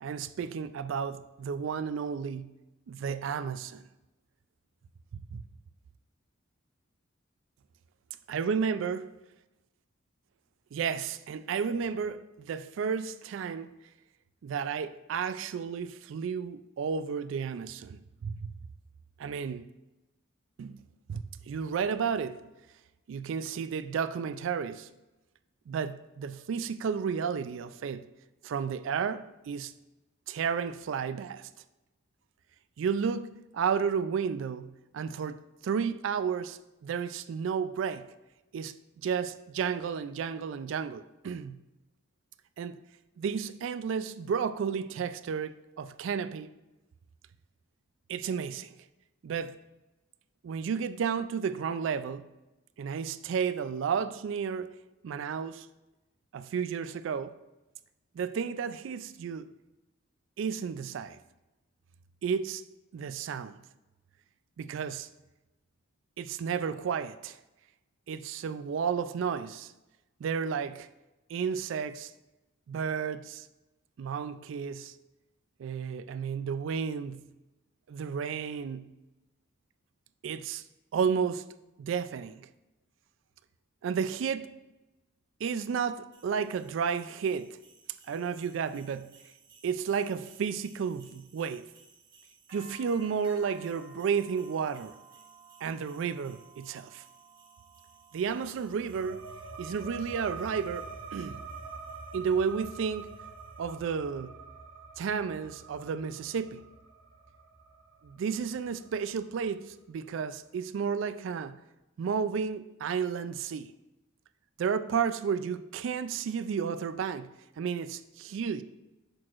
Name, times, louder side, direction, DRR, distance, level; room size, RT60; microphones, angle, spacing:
voice 1, 0.0-2.5 2.9-3.9 5.1-5.4 8.3-9.1 10.7-13.7 14.4-18.5 19.2-19.7 20.6-22.4 23.1-24.9 25.7-28.0 28.4-29.7 30.3-31.5 32.8-38.1 38.5-41.6 42.6-42.8 43.2-46.5 48.1-48.7 49.2-49.6 50.4-52.3 52.8-54.7 55.0-55.7 56.3-57.3 58.1-59.5 60.4-61.2 62.2-62.6 62.9-63.6 64.6-65.1 66.2-67.4 68.1-69.7 70.2-70.9 71.3-72.1 72.7-73.5 74.0-74.9 75.6-77.2 77.9-78.9 80.2-80.6 80.9-81.4 81.8-82.5 83.8-84.6 85.4-87.6 88.1-89.1 89.6-91.7 92.5-94.9 95.6-97.0 98.1-99.3 99.6-101.5 102.1-103.2 103.6-104.3 105.0-106.7 108.0-111.6 112.0-113.7 114.6-117.3 117.6-118.6, right 6 dB, 70° right, 0.3 m, -32 dB
sound 1, 86.1-103.8, right 3 dB, 45° right, 1.5 m, -57 dB
sound 2, 98.3-109.4, right 4 dB, 85° right, 0.7 m, -45 dB
6.3 x 6.0 x 2.5 m
head